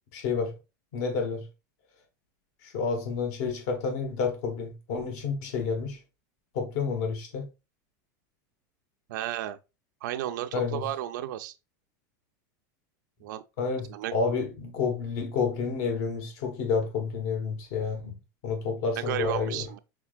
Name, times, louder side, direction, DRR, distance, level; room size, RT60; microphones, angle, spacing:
voice 1, 0.1-0.5 0.9-1.4 2.6-6.0 6.5-7.5 10.5-10.8 13.6-18.2 18.4-19.7, left 5 dB, 55° left, 1.3 m, -30 dB
voice 2, 9.1-9.6 10.0-11.5 13.2-13.4 13.9-14.1 19.0-19.8, right 12 dB, 75° right, 0.5 m, -33 dB
6.0 x 3.8 x 2.4 m
supercardioid pair, 155°, 10 cm